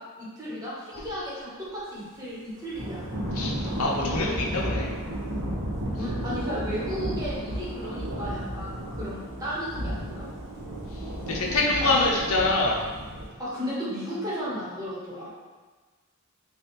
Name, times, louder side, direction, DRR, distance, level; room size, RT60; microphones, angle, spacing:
voice 1, 0.0-3.0 5.9-10.2 11.8-12.0 13.4-15.3, equal, 15° right, -8 dB, 1.0 m, -34 dB
Thunder / Rain, 2.7-13.3, equal, 90° right, 1.0 m, -33 dB
voice 2, 3.3-5.0 11.3-12.9, left 2 dB, 85° left, -2 dB, 0.7 m, -25 dB
3.5 x 2.3 x 4.1 m, 1.4 s
head